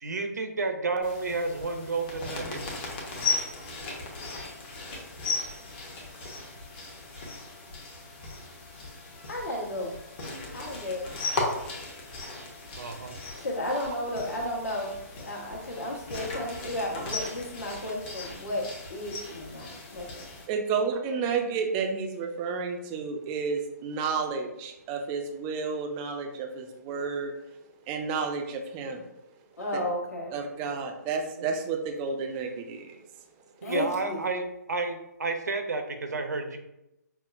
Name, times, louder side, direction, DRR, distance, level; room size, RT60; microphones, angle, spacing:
voice 1, 0.0-2.6 12.8-13.2 31.4-31.5 33.6-36.6, right 3 dB, 70° right, 5 dB, 0.6 m, -31 dB
sound 1, 1.0-20.5, left 3 dB, 35° left, 0.9 m, -37 dB
voice 2, 9.3-9.9 10.5-11.0 13.4-14.9 15.2-18.6 18.9-20.0 29.6-30.3 33.6-34.2, left 1 dB, 60° left, -2 dB, 1.2 m, -33 dB
voice 3, 20.5-27.3 27.9-29.1 29.7-29.8 30.3-33.0, right 5 dB, 20° right, 4 dB, 0.4 m, -31 dB
5.4 x 2.0 x 2.5 m, 0.89 s
figure-of-eight pair, 135°, 9 cm